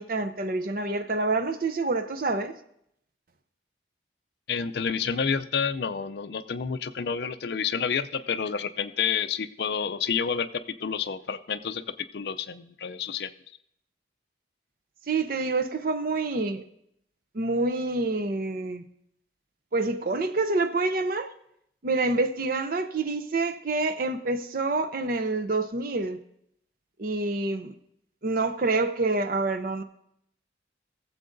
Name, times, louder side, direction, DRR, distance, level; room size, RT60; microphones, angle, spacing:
voice 1, 0.0-2.5 15.1-16.6 17.3-18.8 19.7-21.3 21.8-26.2 27.0-27.7 28.2-29.8, right 3 dB, 50° right, 0.6 m, -27 dB
voice 2, 4.5-10.5 10.8-11.8 12.1-13.3, left 6 dB, 60° left, 0.4 m, -29 dB
19.5 x 7.6 x 2.6 m
head